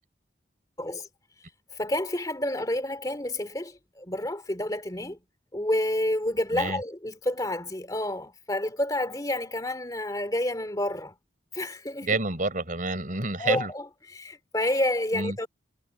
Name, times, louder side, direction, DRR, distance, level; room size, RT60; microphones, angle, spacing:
voice 1, 1.8-5.2 5.5-11.1 11.5-12.1 13.4-13.8 14.1-15.5, left 1 dB, 20° left, 2.6 m, -29 dB
voice 2, 12.0-13.7 15.1-15.4, right 3 dB, 45° right, 4.9 m, -28 dB
head